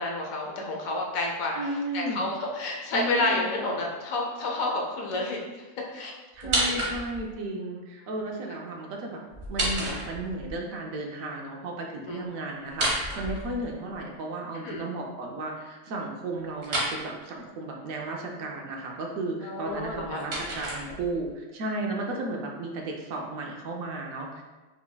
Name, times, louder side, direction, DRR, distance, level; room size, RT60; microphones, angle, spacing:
voice 1, 0.0-1.6 1.9-5.6 5.9-6.1 6.7-6.9 12.1-12.3 14.5-14.9 19.4-20.2 22.1-22.2, left 2 dB, 90° left, -1 dB, 1.2 m, -30 dB
voice 2, 1.5-2.3 2.9-3.5 6.3-9.2 9.5-24.4, right 2 dB, 85° right, 0 dB, 1.1 m, -34 dB
sound 1, 6.4-7.3 9.3-10.5 12.7-14.0 16.6-17.0 19.7-21.3, right 1 dB, 70° right, 1.4 m, -30 dB
4.9 x 3.4 x 2.2 m, 1.2 s
omnidirectional pair, 1.4 m